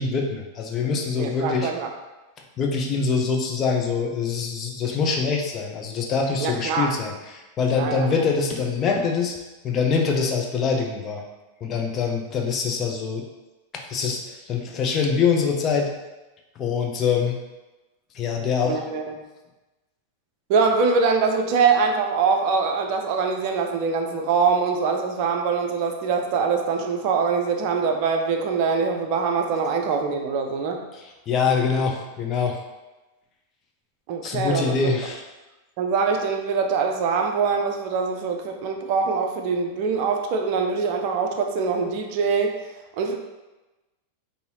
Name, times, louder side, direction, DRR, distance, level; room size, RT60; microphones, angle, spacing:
voice 1, 0.0-1.7 2.6-9.4 9.6-11.2 11.6-13.2 13.7-15.9 16.6-17.4 18.1-18.8 31.0-32.6 34.2-35.2, left 5 dB, 30° left, 1 dB, 0.6 m, -24 dB
voice 2, 1.2-1.9 6.4-6.9 7.7-8.1 18.6-19.0 20.5-30.8 34.1-34.9 35.8-42.5 43.0-43.2, right 5 dB, 45° right, 4 dB, 0.4 m, -23 dB
5.4 x 2.7 x 2.7 m, 1.1 s
figure-of-eight pair, 90°, 0 cm